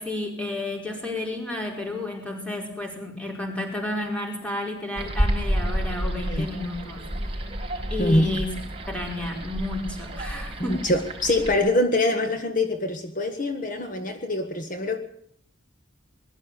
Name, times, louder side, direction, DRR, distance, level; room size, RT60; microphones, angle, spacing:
voice 1, 0.0-7.0 7.3-7.5 7.9-8.6 8.9-10.9, left 2 dB, 5° left, 5.0 m, -31 dB
Soroll de l'aigua Isra y Xavi, 5.0-11.5, equal, 30° right, 4.4 m, -30 dB
voice 2, 8.0-8.3 10.6-15.0, left 1 dB, 40° left, 1.5 m, -24 dB
21.5 x 13.0 x 9.2 m
head